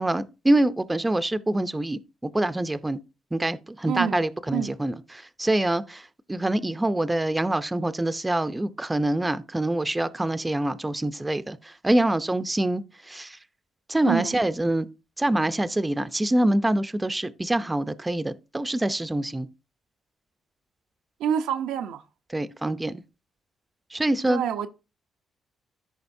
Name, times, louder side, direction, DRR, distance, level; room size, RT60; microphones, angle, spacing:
voice 1, 0.0-3.0 3.3-6.0 6.3-13.4 13.9-14.9 15.2-19.5 22.3-23.0 23.9-24.4, right 1 dB, 15° right, 0.6 m, -25 dB
voice 2, 3.9-4.2 4.5-4.7 14.0-14.4 21.2-22.0 24.3-24.7, right 9 dB, 90° right, 0.7 m, -27 dB
14.0 x 5.1 x 2.7 m
cardioid pair, 80°, 0 cm